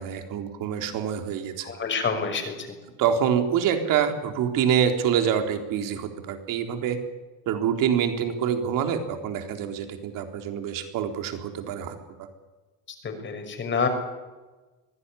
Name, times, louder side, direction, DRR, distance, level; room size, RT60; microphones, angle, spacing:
voice 1, 0.0-1.7 3.0-7.0 7.5-12.0, right 8 dB, 60° right, 5 dB, 3.8 m, -26 dB
voice 2, 1.6-2.5 13.0-13.9, left 5 dB, 30° left, 6 dB, 5.8 m, -27 dB
24.0 x 16.0 x 9.9 m, 1.2 s
supercardioid pair, 120°, 37 cm